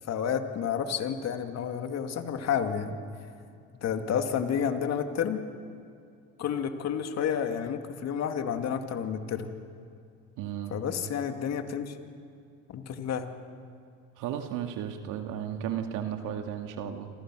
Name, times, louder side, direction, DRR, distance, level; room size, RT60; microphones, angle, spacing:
voice 1, 0.1-3.0 3.8-5.4 6.4-9.5 10.7-12.0 12.7-13.3, left 8 dB, 50° left, 6 dB, 2.5 m, -30 dB
voice 2, 10.4-10.7 14.2-17.1, right 9 dB, 65° right, 5 dB, 2.2 m, -34 dB
27.5 x 27.0 x 6.3 m, 2.4 s
supercardioid pair, 85°, 34 cm